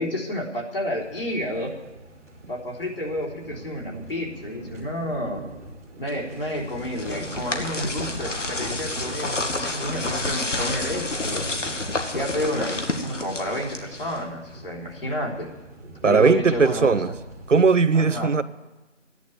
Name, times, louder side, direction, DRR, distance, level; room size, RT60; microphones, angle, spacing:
voice 1, 0.0-1.8 2.5-5.4 6.0-11.5 12.1-15.5 16.0-17.1 17.9-18.3, left 1 dB, 50° left, 3.7 m, -30 dB
sound 1, 1.0-17.7, right 1 dB, 15° right, 1.7 m, -43 dB
sound 2, 6.5-14.3, left 2 dB, 75° left, 2.3 m, -29 dB
voice 2, 16.0-17.1 17.5-18.4, right 5 dB, 80° right, 0.9 m, -18 dB
14.5 x 10.5 x 9.3 m
figure-of-eight pair, 170°, 37 cm